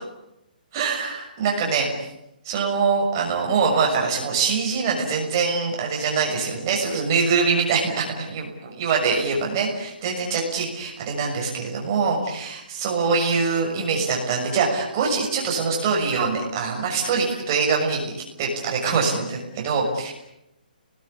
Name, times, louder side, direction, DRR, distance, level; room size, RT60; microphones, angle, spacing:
voice 1, 0.7-1.9 2.4-20.1, right 5 dB, 20° right, -1 dB, 6.3 m, -24 dB
29.5 x 21.0 x 8.7 m, 0.87 s
hypercardioid pair, 180°, 5 cm